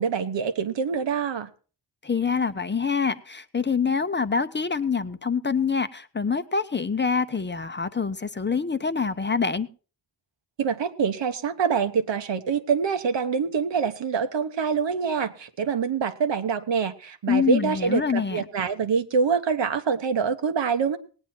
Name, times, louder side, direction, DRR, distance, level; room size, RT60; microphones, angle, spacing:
voice 1, 0.0-1.5 10.6-21.0, right 6 dB, 85° right, 9 dB, 1.1 m, -25 dB
voice 2, 2.0-9.7 17.3-18.4, left 5 dB, 25° left, 11 dB, 0.6 m, -25 dB
18.5 x 9.1 x 4.3 m, 0.37 s
wide cardioid pair, 110°, 42 cm